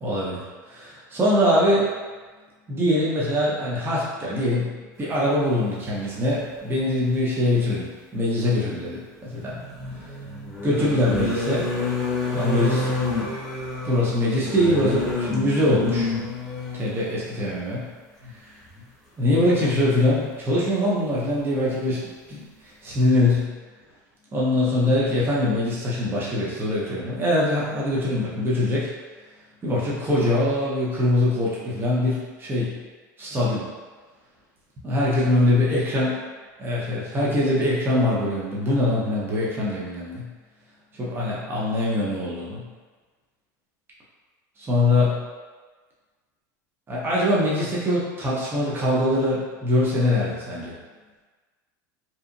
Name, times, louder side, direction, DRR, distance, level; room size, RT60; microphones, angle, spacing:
voice 1, 0.0-0.4 0.7-1.9 2.7-7.9 8.1-9.6 10.6-11.6 12.3-12.9 13.8-16.1 16.7-17.8 19.2-22.0 22.3-23.5 24.3-28.9 29.6-32.7 33.2-33.7 34.8-36.1 36.6-40.3 40.9-42.6 44.6-45.2 46.9-50.7, left 1 dB, 20° right, -6 dB, 0.7 m, -23 dB
sound 1, 7.0-7.1 9.3-17.0 18.2-18.3 18.7-18.8, left 3 dB, 5° left, 1.0 m, -28 dB
2.8 x 2.4 x 2.5 m, 1.4 s
hypercardioid pair, 105°, 10 cm